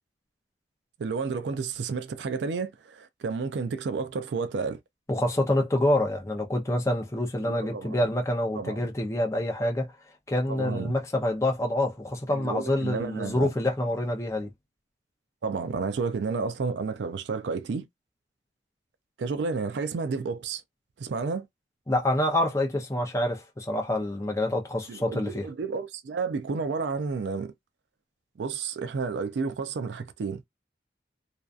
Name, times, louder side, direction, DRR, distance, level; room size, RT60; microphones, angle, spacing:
voice 1, 1.0-4.8 7.4-8.0 8.5-8.9 10.5-11.0 12.3-13.5 15.4-17.9 19.2-20.6 21.0-21.5 24.9-27.5 28.4-30.4, right 4 dB, 75° right, 0.4 m, -31 dB
voice 2, 5.1-9.9 10.3-14.5 21.9-25.5, left 1 dB, 15° left, 0.5 m, -27 dB
2.5 x 2.3 x 2.3 m
head